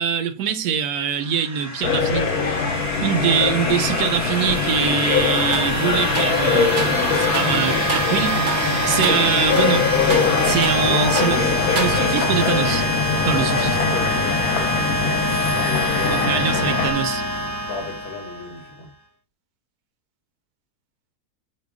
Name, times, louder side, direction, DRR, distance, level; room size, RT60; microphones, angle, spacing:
voice 1, 0.0-2.2 3.0-9.8 10.4-11.4 11.7-12.8 13.2-13.8 16.1-17.2, right 7 dB, 90° right, 1.1 m, -23 dB
sound 1, 1.1-18.7, equal, 25° right, 0.3 m, -25 dB
sound 2, 1.8-16.9, left 6 dB, 80° left, 1.1 m, -23 dB
sound 3, 5.5-5.8 6.1-7.0 7.3-7.6 7.9-8.2 8.5-8.7 9.0-9.2 9.6-10.9 11.2-11.4 11.8-12.3, right 3 dB, 45° right, 0.8 m, -30 dB
voice 2, 6.1-7.9 10.8-11.8 13.3-16.7 17.6-18.9, left 4 dB, 50° left, 1.1 m, -34 dB
4.9 x 2.2 x 3.5 m
omnidirectional pair, 1.6 m